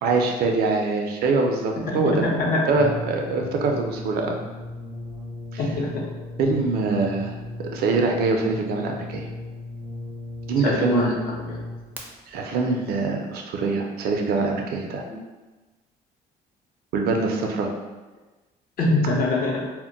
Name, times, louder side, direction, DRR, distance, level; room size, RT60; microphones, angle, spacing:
voice 1, 0.0-2.2 2.7-4.4 5.5-5.6 6.4-7.3 7.7-9.3 10.5-11.1 12.3-15.0 16.9-17.7, right 3 dB, 65° right, 2 dB, 0.5 m, -23 dB
voice 2, 1.9-2.9 5.6-6.0 10.6-11.2 11.4-11.6 15.1-15.2 18.8-19.6, left 2 dB, 60° left, -2 dB, 0.7 m, -24 dB
Brass instrument, 2.7-12.0, left 2 dB, 10° right, 0.4 m, -36 dB
2.1 x 2.1 x 3.8 m, 1.2 s
cardioid pair, 110°, 17 cm